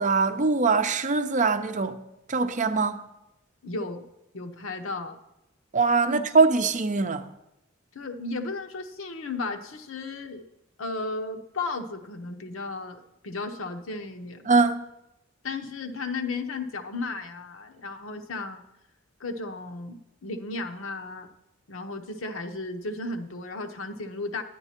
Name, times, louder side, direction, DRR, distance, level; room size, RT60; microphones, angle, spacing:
voice 1, 0.0-2.0 2.3-3.0 5.7-7.3 14.5-14.8, right 4 dB, 40° right, 0.7 m, -22 dB
voice 2, 3.6-4.0 4.3-5.2 6.1-6.4 7.9-10.4 10.8-14.5 15.4-18.6 19.2-21.3 21.7-24.4, left 3 dB, 85° left, 1.0 m, -34 dB
11.0 x 9.8 x 4.4 m
head